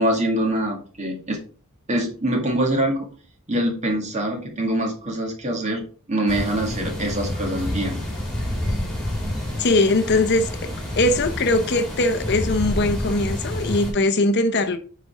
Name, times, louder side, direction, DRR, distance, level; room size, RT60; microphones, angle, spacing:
voice 1, 0.0-1.4 1.9-3.1 3.5-8.0, right 1 dB, 30° right, 2.1 m, -24 dB
sound 1, 6.3-13.9, left 1 dB, 5° left, 2.6 m, -28 dB
voice 2, 9.6-14.8, left 2 dB, 50° left, 0.7 m, -21 dB
9.3 x 5.1 x 3.7 m
head